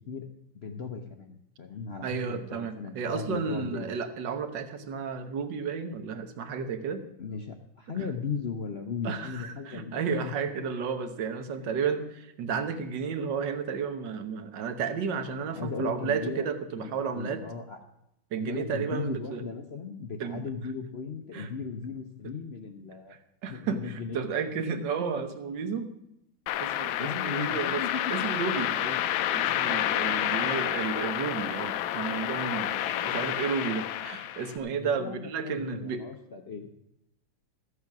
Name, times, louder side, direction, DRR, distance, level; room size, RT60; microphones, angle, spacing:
voice 1, 0.6-3.9 7.2-10.3 11.5-11.8 15.4-16.5 16.8-17.8 18.4-24.5 27.0-28.1 32.9-33.0 34.7-36.8, left 5 dB, 55° left, 4 dB, 0.6 m, -37 dB
voice 2, 2.0-7.1 9.0-17.4 18.3-19.4 20.2-20.4 21.3-21.5 23.4-25.9 26.6-36.0, right 6 dB, 65° right, 8 dB, 1.6 m, -32 dB
sound 1, 26.5-34.6, left 12 dB, 85° left, 1.4 m, -29 dB
13.5 x 8.1 x 6.0 m, 0.84 s
omnidirectional pair, 2.2 m